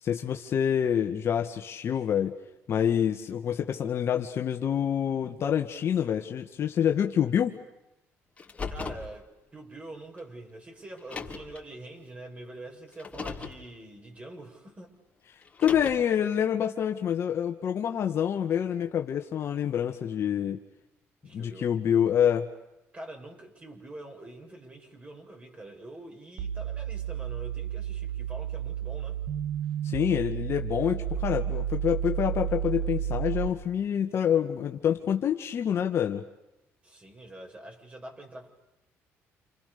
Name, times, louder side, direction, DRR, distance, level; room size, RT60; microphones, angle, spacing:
voice 1, 0.0-2.3 2.7-7.6 15.6-20.6 21.3-22.5 29.8-36.2, left 9 dB, 55° left, 4 dB, 1.9 m, -27 dB
Car, 8.4-9.1 10.2-10.3 11.0-11.6 12.9-13.6 15.4-16.1, left 4 dB, 25° left, 4.0 m, -37 dB
voice 2, 8.7-14.9 21.2-21.7 22.9-29.2 36.8-38.5, right 1 dB, 25° right, 2 dB, 7.1 m, -45 dB
sound 1, 26.4-33.5, right 10 dB, 85° right, 2.0 m, -32 dB
29.5 x 29.0 x 6.9 m, 0.95 s
cardioid pair, 105°, 5 cm